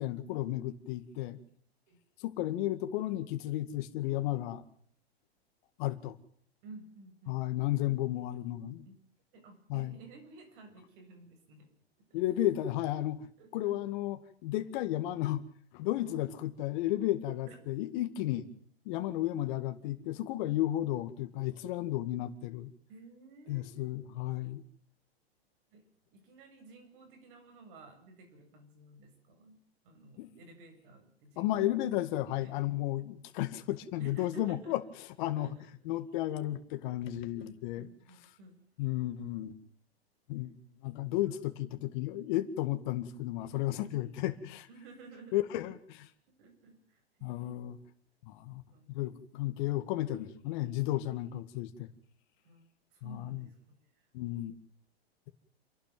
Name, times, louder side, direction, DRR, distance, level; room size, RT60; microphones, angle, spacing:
voice 1, 0.0-1.4 2.2-4.6 5.8-6.2 7.3-8.9 9.7-9.9 12.1-18.5 18.9-22.7 23.5-24.6 30.2-30.3 31.4-35.6 35.8-37.9 38.8-39.6 40.3-40.5 40.8-44.7 45.3-46.1 47.2-47.8 48.2-48.6 48.9-51.9 53.0-53.5 54.1-54.6, left 14 dB, 50° left, 9 dB, 2.0 m, -33 dB
voice 2, 6.6-7.7 8.9-9.0 9.3-11.7 12.0-12.2 13.4-13.7 17.5-17.6 22.9-23.9 25.7-31.8 32.4-32.6 34.0-34.8 35.3-35.7 37.4-38.6 39.4-39.5 41.2-41.4 43.8-44.0 44.7-45.4 46.3-47.3 48.7-48.9 52.4-52.6 52.9-54.1, right 3 dB, 55° right, 6 dB, 7.6 m, -54 dB
28.5 x 11.5 x 9.3 m, 0.64 s
hypercardioid pair, 115°, 32 cm